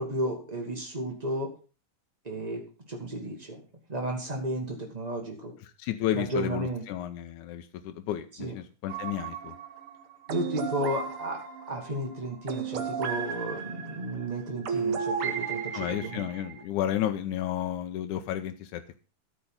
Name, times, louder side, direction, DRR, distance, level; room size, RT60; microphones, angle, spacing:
voice 1, 0.0-1.5 2.2-3.6 3.9-5.5 6.1-6.8 8.4-8.5 10.3-11.4 11.7-16.3, right 1 dB, 80° right, 1 dB, 0.3 m, -33 dB
voice 2, 5.8-9.6 15.7-19.0, left 11 dB, 75° left, 6 dB, 2.0 m, -32 dB
sound 1, 8.9-16.6, right 6 dB, 60° right, 1.5 m, -34 dB
13.5 x 5.4 x 5.6 m, 0.36 s
omnidirectional pair, 3.9 m